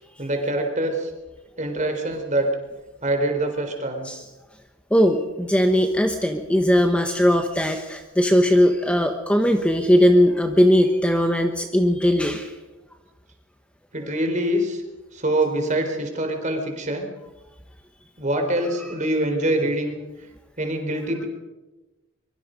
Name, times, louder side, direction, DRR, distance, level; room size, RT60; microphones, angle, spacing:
voice 1, 0.2-1.1 1.6-2.5 3.0-4.1 13.9-14.8 15.1-17.1 18.2-19.9 20.6-21.3, right 1 dB, 35° right, 4 dB, 4.0 m, -24 dB
voice 2, 4.9-12.5, equal, 5° left, 5 dB, 1.1 m, -19 dB
24.5 x 23.0 x 5.3 m, 1.1 s
head